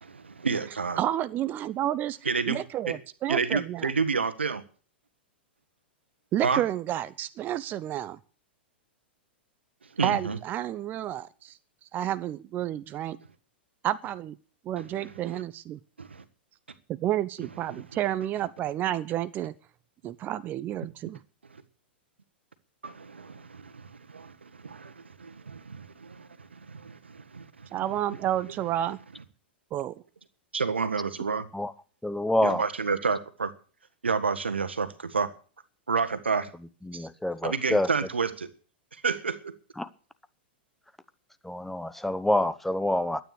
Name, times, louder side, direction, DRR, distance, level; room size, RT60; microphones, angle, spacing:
voice 1, 0.0-1.0 2.2-2.9 3.3-4.6 6.4-6.6 10.0-10.4 15.0-15.4 16.0-16.2 17.7-17.8 22.8-27.7 30.5-31.4 32.4-33.5 34.0-35.3 35.9-36.5 36.9-37.1 37.4-38.5 39.0-39.5, right 5 dB, 90° right, 1.5 m, -30 dB
voice 2, 1.0-2.2 2.5-3.9 6.3-8.2 10.0-11.6 11.9-13.2 13.8-14.3 14.7-15.8 16.9-19.5 20.0-21.2 27.7-29.0 29.7-29.9, right 12 dB, 30° right, 0.7 m, -30 dB
voice 3, 32.0-32.6 36.8-37.9 39.8-39.9 41.4-43.2, left 1 dB, 5° left, 0.9 m, -27 dB
12.5 x 9.4 x 8.2 m
hypercardioid pair, 105°, 6 cm